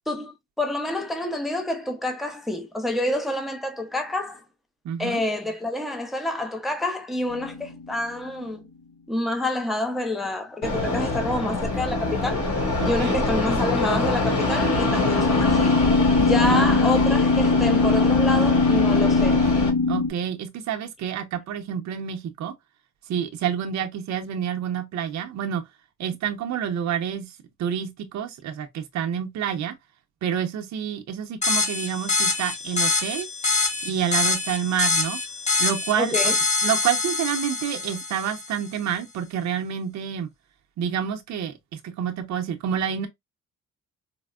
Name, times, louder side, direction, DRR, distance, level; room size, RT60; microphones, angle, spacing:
voice 1, 0.1-4.4 5.0-8.6 9.1-12.4 12.8-15.8 16.2-19.5 36.0-36.3, left 1 dB, ahead, 0.5 m, -28 dB
voice 2, 4.8-5.2 12.8-13.2 16.4-17.1 19.9-22.5 23.1-25.6 26.0-29.7 30.2-33.3 33.8-35.2 35.6-36.3 36.6-40.3 40.8-43.1, right 8 dB, 65° right, 0.6 m, -28 dB
sound 1, 7.3-7.9 13.9-20.1, left 4 dB, 85° left, 0.9 m, -21 dB
Fixed-wing aircraft airplane, 10.6-19.7, left 2 dB, 50° left, 1.7 m, -25 dB
sound 2, 31.4-38.6, left 3 dB, 25° left, 1.0 m, -25 dB
4.2 x 2.0 x 2.3 m
cardioid pair, 90°, 30 cm